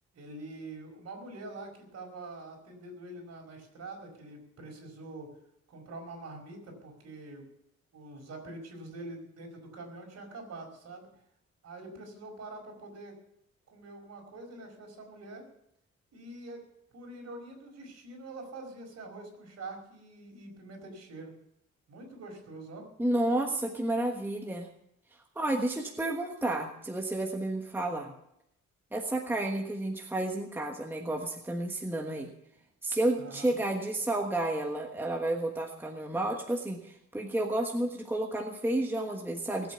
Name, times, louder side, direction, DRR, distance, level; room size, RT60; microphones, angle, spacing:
voice 1, 0.1-5.3 5.7-7.5 7.9-11.1 11.6-13.2 13.7-15.4 16.1-16.6 16.9-21.3 21.9-22.8 27.8-28.1 33.1-33.6, right 2 dB, 60° right, 2 dB, 5.1 m, -45 dB
voice 2, 23.0-24.7 25.3-28.1 28.9-32.3 32.8-39.7, right 1 dB, 5° right, 2 dB, 1.3 m, -31 dB
19.5 x 8.4 x 6.9 m, 0.75 s
wide cardioid pair, 160°, 29 cm